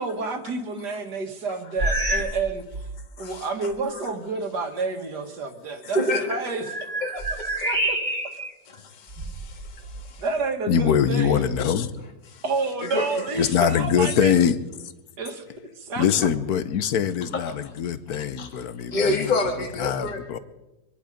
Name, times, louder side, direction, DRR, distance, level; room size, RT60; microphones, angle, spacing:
voice 1, 0.0-2.6 3.2-6.0 6.3-6.6 7.6-8.0 10.2-11.5 12.4-14.3 15.2-15.4 15.8-16.3 18.9-19.0, right 3 dB, 55° right, 2.2 m, -29 dB
sound 1, 1.8-2.4 2.7-3.1 3.7-3.8 6.2-8.5 9.1-10.1, right 1 dB, 25° right, 2.2 m, -28 dB
voice 2, 3.2-4.0 5.8-6.6 7.0-7.7 8.7-10.2 12.3-12.4 12.8-13.3 17.3-17.6 18.4-18.5 18.9-20.4, left 2 dB, 25° left, 1.8 m, -29 dB
voice 3, 10.7-11.9 13.4-14.6 14.8-14.9 16.0-19.3 19.8-20.4, left 8 dB, 60° left, 1.2 m, -23 dB
24.5 x 11.0 x 5.1 m
omnidirectional pair, 2.1 m